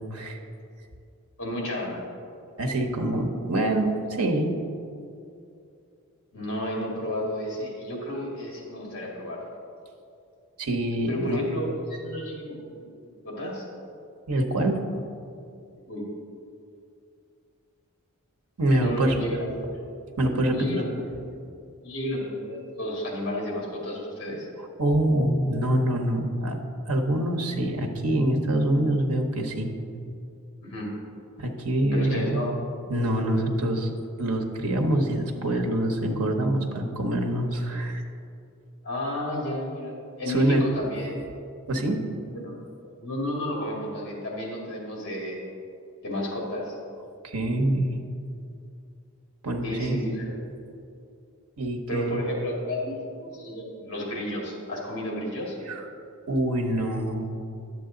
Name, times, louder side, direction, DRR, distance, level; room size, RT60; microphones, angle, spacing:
voice 1, 1.4-2.0 6.3-9.4 11.1-13.6 15.9-16.1 18.7-19.8 20.5-21.1 21.8-24.5 30.6-30.9 31.9-32.5 38.8-41.2 42.3-42.5 43.0-45.5 46.0-46.8 49.6-50.4 51.9-55.6, equal, 55° left, -2 dB, 2.1 m, -32 dB
voice 2, 2.6-4.5 10.6-11.4 14.3-14.8 18.6-19.2 20.2-20.7 24.6-26.6 26.9-29.7 31.4-32.4 32.9-38.0 40.3-40.6 41.7-42.0 47.2-48.0 49.4-50.0 51.6-52.2 55.7-55.9 56.3-57.3, right 1 dB, 85° right, 3 dB, 1.0 m, -25 dB
10.5 x 7.5 x 3.9 m, 2.5 s
head